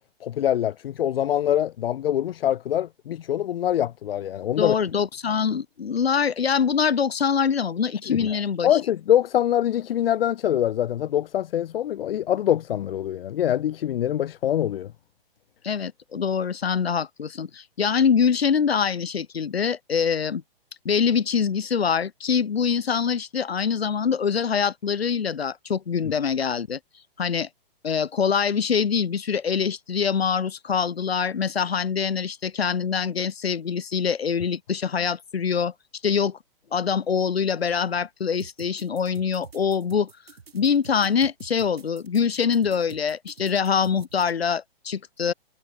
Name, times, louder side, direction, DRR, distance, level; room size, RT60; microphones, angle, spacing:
voice 1, 0.2-4.7 8.1-8.3 8.6-14.9, left 11 dB, 70° left, 0.5 m, -24 dB
voice 2, 4.6-8.7 15.6-20.4 20.8-26.8 27.2-27.5 27.8-35.7 36.0-36.4 36.7-40.1 40.5-45.3, left 6 dB, 90° left, 2.1 m, -24 dB
sound 1, 38.4-44.3, right 6 dB, 90° right, 6.4 m, -46 dB
hypercardioid pair, 155°, 30 cm